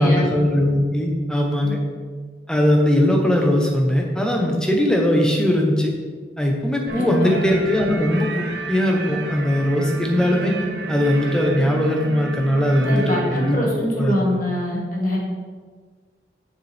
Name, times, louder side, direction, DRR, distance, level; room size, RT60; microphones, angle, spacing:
voice 1, 0.0-1.8 2.5-5.9 6.4-10.5 10.9-13.6 14.0-14.1, left 1 dB, 5° left, 0 dB, 0.9 m, -19 dB
sound 1, 6.9-13.5, right 4 dB, 70° right, 0.7 m, -31 dB
voice 2, 7.0-7.4 12.8-15.2, left 1 dB, 50° left, -3 dB, 1.7 m, -24 dB
7.0 x 6.7 x 3.5 m, 1.5 s
head